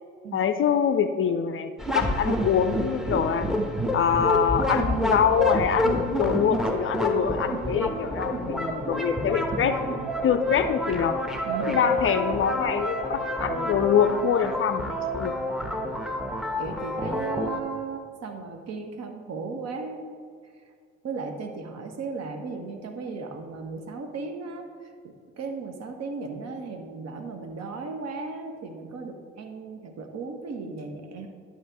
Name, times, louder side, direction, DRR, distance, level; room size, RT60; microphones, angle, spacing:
voice 1, 0.3-3.5 3.9-9.7 10.2-11.2 11.7-15.4, left 7 dB, 35° left, 9 dB, 0.5 m, -24 dB
sound 1, 1.8-17.6, left 1 dB, ahead, 1.1 m, -28 dB
voice 2, 11.4-11.9 13.4-13.8 15.7-16.0 16.6-20.1 21.0-31.3, right 4 dB, 45° right, 5 dB, 1.2 m, -36 dB
11.5 x 5.6 x 3.6 m, 2.1 s
figure-of-eight pair, 50°, 35 cm